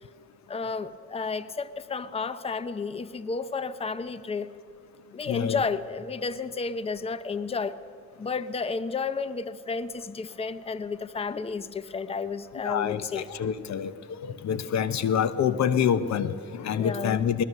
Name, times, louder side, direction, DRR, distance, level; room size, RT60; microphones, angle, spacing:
voice 1, 0.5-4.5 5.1-7.8 8.2-13.3 16.7-17.2, left 4 dB, 20° left, 14 dB, 0.7 m, -32 dB
voice 2, 5.3-5.6 12.6-13.9 14.2-17.4, left 8 dB, 65° left, 13 dB, 0.9 m, -26 dB
21.0 x 20.0 x 6.7 m, 2.4 s
cardioid pair, 90°, 30 cm